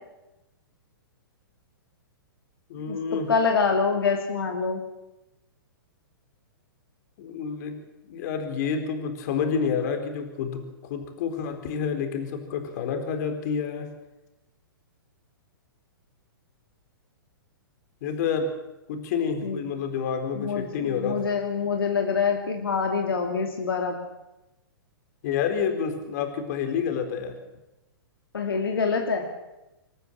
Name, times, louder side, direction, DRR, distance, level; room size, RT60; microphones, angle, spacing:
voice 1, 2.7-3.3 7.2-7.8 8.1-10.6 10.9-13.9 18.0-18.5 18.9-21.2 25.2-27.4, left 6 dB, 50° left, 6 dB, 4.1 m, -29 dB
voice 2, 3.3-4.8 19.4-19.6 20.3-24.0 28.3-29.3, left 5 dB, 80° left, 3 dB, 2.7 m, -25 dB
26.5 x 13.5 x 7.6 m, 0.97 s
hypercardioid pair, 125°, 12 cm